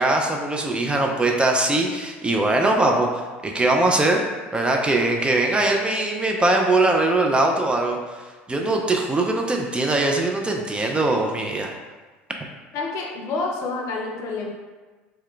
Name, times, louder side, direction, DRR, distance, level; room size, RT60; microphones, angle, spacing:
voice 1, 0.0-4.2 4.5-8.0 8.5-11.7, right 2 dB, 15° right, 1 dB, 0.3 m, -21 dB
voice 2, 12.7-14.5, left 3 dB, 50° left, 0 dB, 0.5 m, -28 dB
2.2 x 2.1 x 3.6 m, 1.3 s
figure-of-eight pair, 70°, 7 cm